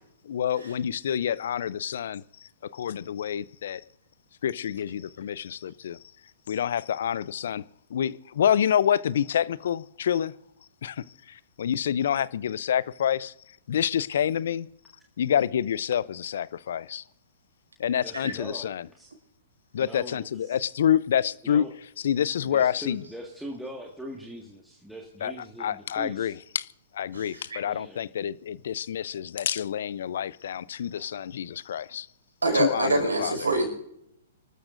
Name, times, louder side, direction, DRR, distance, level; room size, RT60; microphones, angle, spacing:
voice 1, 0.2-3.8 4.4-6.0 6.5-7.6 7.9-10.3 10.8-13.3 13.7-14.7 15.2-17.0 17.8-18.9 19.7-21.7 22.0-23.0 25.2-25.3 25.6-26.7 26.9-32.1 32.5-33.4, left 9 dB, 65° left, 0.5 m, -27 dB
voice 2, 18.0-19.1 19.8-20.6 21.4-21.7 22.4-26.3 27.6-28.0, right 1 dB, 5° right, 1.8 m, -41 dB
voice 3, 27.1-27.6 32.4-33.7, right 2 dB, 90° right, 5.4 m, -25 dB
26.5 x 13.0 x 2.6 m
hypercardioid pair, 120°, 0 cm